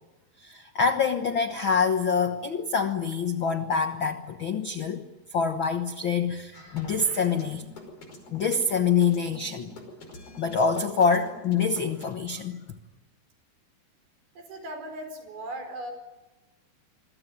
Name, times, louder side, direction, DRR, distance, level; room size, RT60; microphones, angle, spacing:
voice 1, 0.4-5.1 5.3-7.7 8.3-9.8 10.4-12.6, left 5 dB, 85° left, 8 dB, 1.1 m, -26 dB
sound 1, 6.5-12.1, left 1 dB, 40° left, 6.2 m, -45 dB
voice 2, 14.4-15.9, right 1 dB, 85° right, 7 dB, 6.6 m, -38 dB
27.5 x 22.5 x 9.3 m, 1.1 s
omnidirectional pair, 4.3 m